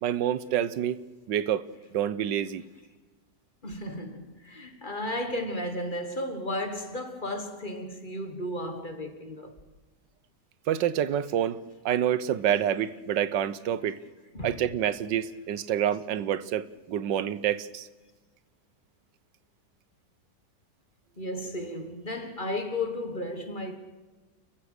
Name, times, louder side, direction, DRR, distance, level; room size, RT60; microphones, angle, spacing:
voice 1, 0.0-1.0 1.3-1.6 1.9-2.6 10.7-11.6 11.8-14.0 14.4-17.9, right 10 dB, 90° right, 1.5 m, -27 dB
voice 2, 3.6-9.6 14.3-14.6 21.2-23.8, left 1 dB, 30° left, 1.6 m, -34 dB
30.0 x 15.0 x 6.6 m
omnidirectional pair, 1.9 m